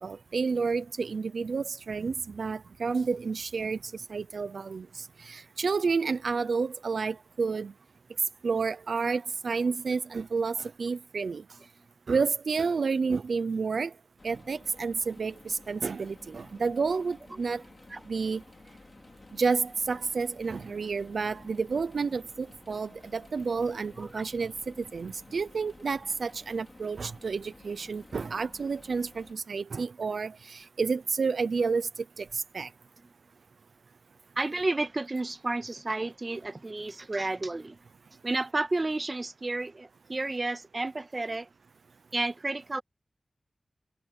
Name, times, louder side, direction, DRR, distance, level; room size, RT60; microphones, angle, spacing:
voice 1, 0.0-7.7 8.4-11.4 12.1-13.9 14.2-17.6 18.1-18.4 19.3-32.7, right 5 dB, 90° right, 0.6 m, -30 dB
sound 1, 14.2-29.3, left 2 dB, 50° left, 4.9 m, -53 dB
voice 2, 34.4-37.8 38.2-41.5 42.1-42.8, right 2 dB, 40° right, 1.9 m, -31 dB
wide cardioid pair, 55°, 0 cm